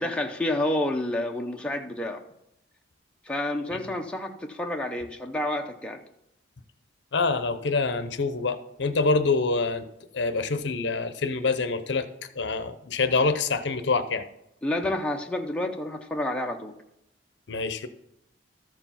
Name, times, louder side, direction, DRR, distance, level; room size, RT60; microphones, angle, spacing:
voice 1, 0.0-2.2 3.2-6.0 14.6-16.7, left 1 dB, 5° left, 0.6 m, -29 dB
voice 2, 7.1-9.9 10.1-12.1 12.4-14.3 17.5-17.9, left 3 dB, 60° left, 0.7 m, -26 dB
13.5 x 4.8 x 5.6 m
head